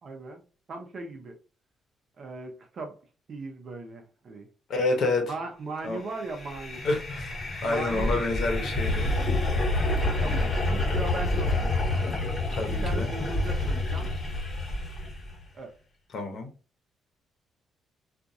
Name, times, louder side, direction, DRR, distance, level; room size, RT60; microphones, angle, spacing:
voice 1, 0.0-0.4 0.7-1.3 2.2-3.0 3.3-4.5 5.3-6.8 7.6-8.3 9.9-11.8 12.7-14.1 15.5-15.7, right 3 dB, 50° right, 0.7 m, -38 dB
voice 2, 4.7-5.3 5.8-6.0 6.8-7.3 7.6-9.1 12.5-13.1 16.1-16.5, left 2 dB, 65° left, 0.9 m, -28 dB
sound 1, 6.2-15.3, left 2 dB, 35° left, 1.1 m, -28 dB
2.6 x 2.5 x 2.3 m
cardioid pair, 90°, 0 cm